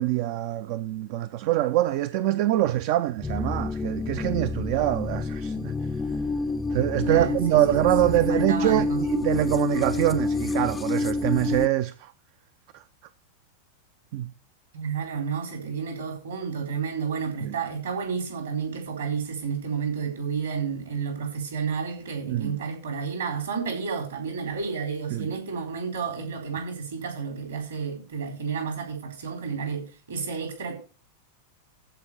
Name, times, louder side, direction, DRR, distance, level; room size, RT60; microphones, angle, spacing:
voice 1, 0.0-5.7 6.7-12.1 12.7-12.8 14.1-14.3 17.4-17.6 22.3-22.6 25.1-25.3, right 14 dB, 45° right, 0.5 m, -24 dB
sound 1, 3.2-11.7, left 3 dB, 15° left, 0.5 m, -28 dB
voice 2, 7.1-7.7 8.3-9.0 14.7-30.7, right 6 dB, 65° right, 4.1 m, -31 dB
14.0 x 5.1 x 6.9 m
figure-of-eight pair, 90°, 0 cm